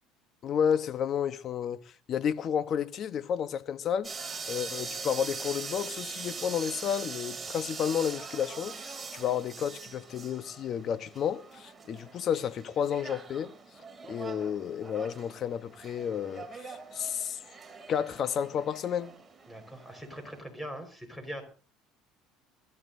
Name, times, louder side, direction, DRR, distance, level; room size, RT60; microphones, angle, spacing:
voice 1, 0.4-1.8 2.1-4.1 4.5-13.5 14.1-17.4 17.9-19.1, left 8 dB, 50° left, 0.9 m, -31 dB
sound 1, 4.0-20.4, right 4 dB, 20° right, 2.8 m, -42 dB
voice 2, 19.5-21.4, equal, 5° left, 4.6 m, -41 dB
22.0 x 13.0 x 2.7 m
supercardioid pair, 95°, 0 cm